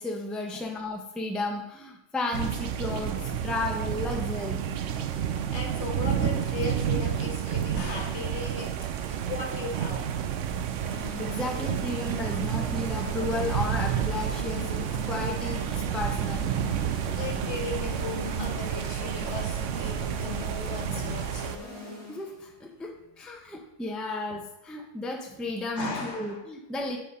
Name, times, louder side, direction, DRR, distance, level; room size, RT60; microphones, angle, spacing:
voice 1, 0.0-4.7 6.0-6.1 11.2-15.6 15.9-16.5 22.1-27.0, left 2 dB, ahead, 1 dB, 0.8 m, -33 dB
sound 1, 2.3-21.6, right 9 dB, 70° right, 0.9 m, -30 dB
voice 2, 5.3-10.0 15.9-16.0 17.2-21.6 25.7-26.4, left 3 dB, 60° left, 1 dB, 1.7 m, -37 dB
sound 2, 10.8-22.4, left 1 dB, 25° right, 3.7 m, -41 dB
8.3 x 4.7 x 5.5 m, 0.85 s
omnidirectional pair, 1.3 m